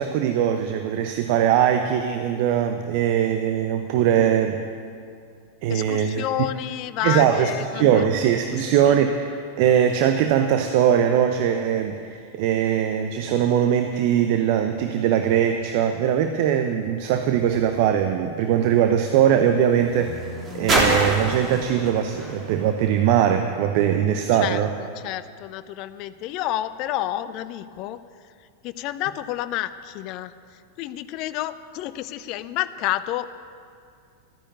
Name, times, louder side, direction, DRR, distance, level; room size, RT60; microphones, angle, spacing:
voice 1, 0.0-4.6 5.6-6.2 7.0-20.2 20.5-24.7, right 9 dB, 45° right, 7 dB, 0.8 m, -21 dB
voice 2, 5.7-8.1 8.8-9.0 24.4-28.0 28.6-30.3 30.8-33.3, left 14 dB, 40° left, 14 dB, 0.6 m, -29 dB
sound 1, 18.9-23.7 24.5-24.6, right 1 dB, 20° right, 3.5 m, -29 dB
13.5 x 9.9 x 8.6 m, 2.3 s
figure-of-eight pair, 90°, 0 cm